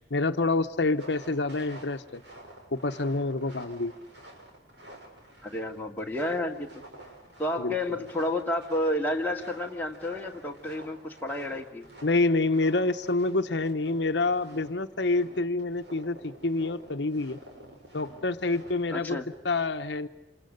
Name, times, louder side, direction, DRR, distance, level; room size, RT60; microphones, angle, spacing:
voice 1, 0.1-2.2 2.7-3.9 7.6-7.8 12.0-17.4 17.9-19.2 19.4-20.1, left 2 dB, 75° left, 8 dB, 1.0 m, -27 dB
sound 1, 1.0-18.9, right 1 dB, 70° right, 7.0 m, -50 dB
voice 2, 5.4-6.7 7.4-11.9 18.9-19.3, left 1 dB, 10° left, -1 dB, 2.2 m, -30 dB
29.0 x 27.5 x 6.6 m, 0.90 s
head